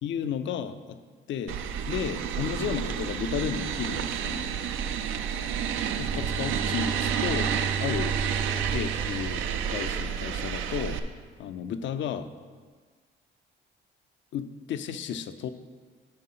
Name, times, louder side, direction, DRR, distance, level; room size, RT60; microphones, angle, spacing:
voice 1, 0.0-1.0 1.3-1.6 1.9-4.6 6.0-8.1 8.7-11.0 11.4-12.3 14.3-15.5, left 8 dB, 70° left, 11 dB, 0.5 m, -33 dB
sound 1, 1.5-11.0, right 8 dB, 85° right, 0.5 m, -30 dB
Bowed string instrument, 6.0-10.4, right 5 dB, 15° right, 0.4 m, -35 dB
7.7 x 4.6 x 5.8 m, 1.5 s
cardioid pair, 90°, 20 cm